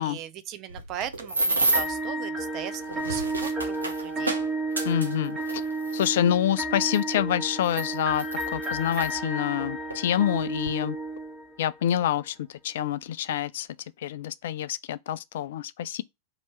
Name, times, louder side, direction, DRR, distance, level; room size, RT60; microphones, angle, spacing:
voice 1, 0.0-4.3, right 10 dB, 35° right, 0.6 m, -39 dB
sound 1, 0.7-2.0 2.8-6.1 6.9-7.0 7.6-9.1 9.9-10.0 10.4-10.7, right 2 dB, 80° right, 0.8 m, -30 dB
sound 2, 1.7-11.8, right 2 dB, 20° right, 1.4 m, -32 dB
voice 2, 4.8-5.4 5.9-11.0 11.6-13.7 14.0-16.0, left 10 dB, 55° left, 0.3 m, -27 dB
3.0 x 2.9 x 4.4 m
figure-of-eight pair, 90°, 0 cm